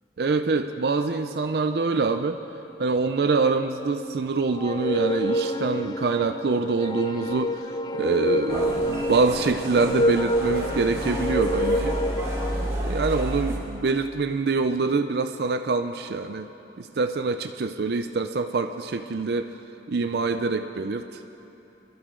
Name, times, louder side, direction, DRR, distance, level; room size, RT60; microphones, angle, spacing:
voice 1, 0.2-2.4 2.8-7.7 7.9-12.0 12.8-16.5 16.8-19.5 19.9-21.2, right 4 dB, 60° right, 8 dB, 0.4 m, -25 dB
sound 1, 4.6-12.7, equal, 25° left, 0.3 m, -27 dB
sound 2, 8.5-13.6, right 1 dB, 20° right, 2.6 m, -31 dB
23.5 x 13.0 x 3.8 m, 3.0 s
head